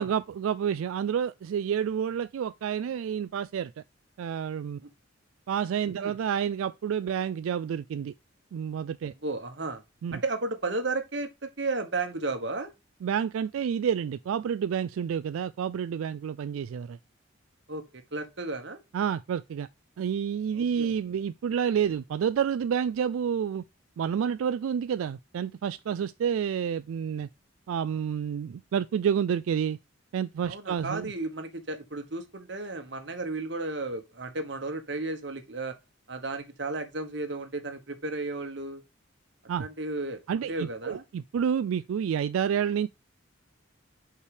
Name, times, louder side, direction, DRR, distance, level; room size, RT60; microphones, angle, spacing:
voice 1, 0.0-3.7 4.2-4.8 5.5-8.1 8.5-9.1 10.0-10.2 13.0-17.0 18.9-19.7 20.0-23.6 24.0-27.3 27.7-29.8 30.1-31.1 39.5-39.7 40.3-42.9, right 8 dB, 90° right, 0.3 m, -29 dB
voice 2, 9.2-9.8 10.1-12.7 17.7-17.8 18.1-18.8 20.6-20.9 30.5-35.7 36.1-38.8 39.6-41.0, right 3 dB, 60° right, 1.3 m, -33 dB
5.4 x 4.9 x 4.9 m
head